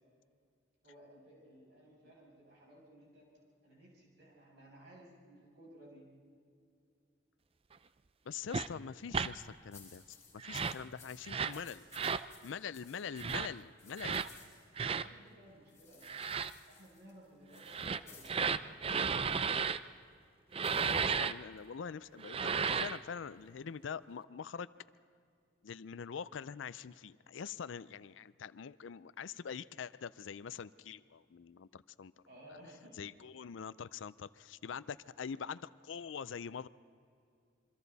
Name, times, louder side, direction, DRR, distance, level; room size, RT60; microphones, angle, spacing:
voice 1, 0.8-3.3 3.6-6.1 14.3-16.3 16.7-19.0 32.3-33.1, right 1 dB, 60° right, -4 dB, 7.1 m, -58 dB
voice 2, 8.3-11.8 12.4-14.3 20.7-24.7 25.6-32.1 33.0-36.7, left 6 dB, 85° left, 17 dB, 0.5 m, -44 dB
sound 1, 8.5-8.7 9.1-9.3 10.4-10.8 11.3-11.6 11.9-12.3 13.1-13.5 14.0-14.3 14.8-15.1 16.0-16.5 17.6-19.8 20.5-21.3 22.2-23.0, right 6 dB, 30° right, 0.4 m, -34 dB
sound 2, 9.2-9.5 9.7-14.9 15.7-18.4 20.6-21.7, left 5 dB, 15° left, 6.0 m, -59 dB
27.0 x 24.5 x 4.1 m, 2.4 s
head